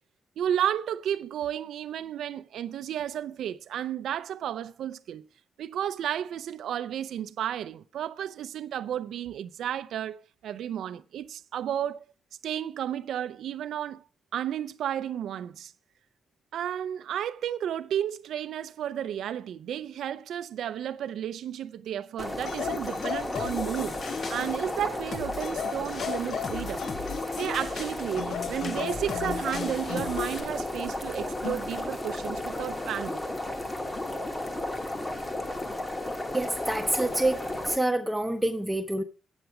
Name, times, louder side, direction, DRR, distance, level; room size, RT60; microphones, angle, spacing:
voice 1, 0.4-5.2 5.6-12.0 12.4-14.0 14.3-15.7 16.5-26.8 27.4-33.2, right 10 dB, 85° right, 0.4 m, -32 dB
sound 1, 22.2-37.8, left 1 dB, 20° left, 1.0 m, -34 dB
sound 2, 22.4-24.7 25.4-27.8 28.2-30.4 31.4-31.7, left 8 dB, 75° left, 0.4 m, -36 dB
sound 3, 23.3-30.4, left 4 dB, 50° left, 0.8 m, -41 dB
voice 2, 36.3-39.0, right 1 dB, 5° right, 0.6 m, -27 dB
8.1 x 7.9 x 4.7 m
cardioid pair, 130°, 0 cm